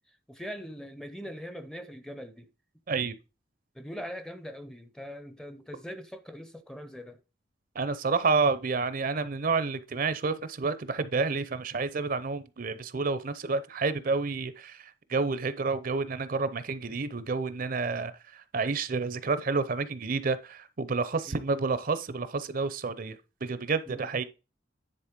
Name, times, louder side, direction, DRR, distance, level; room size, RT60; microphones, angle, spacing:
voice 1, 0.3-2.5 3.7-7.2 15.2-15.3 21.3-21.4 23.9-24.1, equal, 5° left, 0.6 m, -42 dB
voice 2, 7.7-24.2, right 4 dB, 50° right, 0.6 m, -29 dB
10.0 x 4.0 x 5.2 m
head